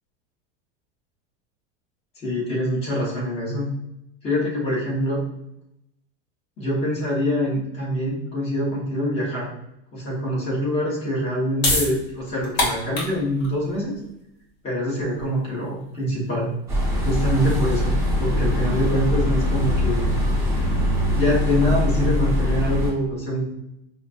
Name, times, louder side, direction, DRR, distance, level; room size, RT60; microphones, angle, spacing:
voice 1, 2.2-3.7 4.2-5.2 6.6-9.5 9.9-13.9 14.6-16.5 17.0-20.1 21.0-23.4, equal, 20° left, -6 dB, 1.1 m, -24 dB
sound 1, 11.2-17.9, left 2 dB, 65° left, 1.3 m, -29 dB
sound 2, 16.7-22.9, left 1 dB, 10° right, 1.1 m, -22 dB
5.0 x 2.1 x 2.5 m, 0.83 s
supercardioid pair, 180°, 30 cm